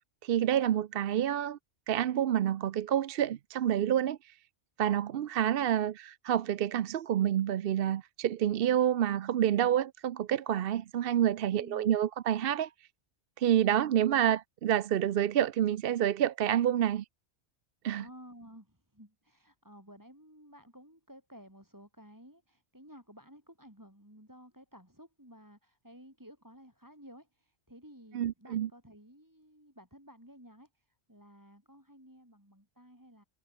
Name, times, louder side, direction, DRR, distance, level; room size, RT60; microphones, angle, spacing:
voice 1, 0.2-1.6 1.9-4.2 4.8-12.7 13.4-17.0 17.8-18.0 28.1-28.7, right 10 dB, 60° right, 0.7 m, -28 dB
voice 2, 11.5-11.9 17.9-33.2, equal, 15° right, 7.2 m, -54 dB
omnidirectional pair, 1.2 m